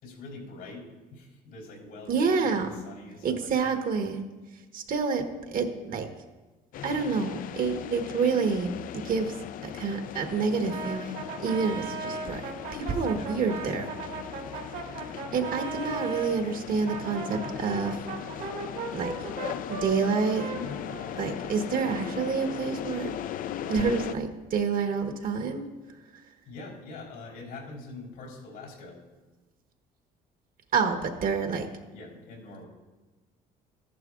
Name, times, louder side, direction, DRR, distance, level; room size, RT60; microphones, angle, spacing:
voice 1, 0.0-3.7 11.6-11.8 12.8-14.1 15.2-15.6 26.5-29.0 31.9-32.7, left 2 dB, 85° left, -3 dB, 3.9 m, -45 dB
voice 2, 2.1-2.7 3.2-4.2 4.7-6.1 6.8-9.3 9.6-13.9 15.3-18.0 18.9-19.1 19.7-20.4 21.2-23.1 23.7-25.7 30.7-31.7, right 5 dB, 55° right, 5 dB, 1.2 m, -28 dB
sound 1, 6.7-24.1, left 10 dB, 55° left, 0.4 m, -38 dB
Brass instrument, 10.7-16.3 16.8-21.6, right 4 dB, 75° right, 1.9 m, -37 dB
14.0 x 11.0 x 2.5 m, 1.2 s
cardioid pair, 110°, 17 cm